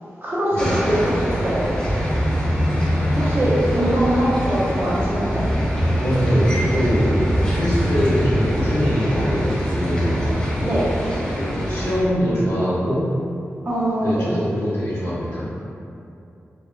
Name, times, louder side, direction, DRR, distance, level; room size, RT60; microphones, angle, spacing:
voice 1, 0.2-1.7 3.1-5.5 10.5-10.9 13.6-14.3, right 1 dB, 45° right, -9 dB, 0.9 m, -22 dB
sound 1, 0.6-12.0, equal, 15° left, 0.9 m, -23 dB
voice 2, 5.9-9.5 9.8-10.2 11.3-13.0 14.0-15.5, equal, 65° left, -12 dB, 1.4 m, -23 dB
3.5 x 2.3 x 2.2 m, 2.6 s
cardioid pair, 60°, 5 cm